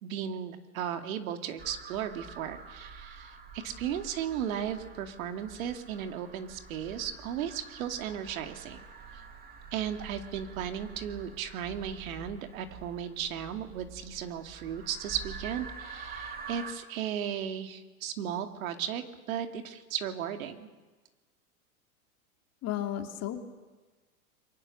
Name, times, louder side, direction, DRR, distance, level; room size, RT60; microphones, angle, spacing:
voice 1, 0.0-8.8 9.7-20.7, right 9 dB, 65° right, 6 dB, 2.4 m, -35 dB
sound 1, 1.6-16.7, right 4 dB, 20° right, 2.4 m, -47 dB
voice 2, 22.6-23.4, left 11 dB, 35° left, 4 dB, 2.6 m, -33 dB
29.0 x 23.5 x 6.5 m, 1.3 s
hypercardioid pair, 120°, 44 cm